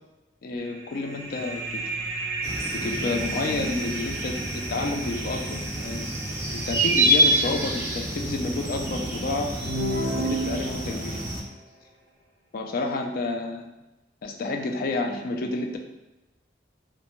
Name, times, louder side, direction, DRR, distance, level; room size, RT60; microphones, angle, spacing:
voice 1, 0.4-1.8 2.7-6.1 6.5-9.6 10.1-11.2 12.5-13.6 14.2-15.8, left 2 dB, 55° left, 3 dB, 0.3 m, -30 dB
sound 1, 0.6-9.9, right 3 dB, 70° right, 0.4 m, -36 dB
sound 2, 2.4-11.4, right 1 dB, 15° right, 0.4 m, -27 dB
sound 3, 9.6-11.2, right 2 dB, 85° left, 0.9 m, -29 dB
2.5 x 2.1 x 3.0 m, 1.0 s
head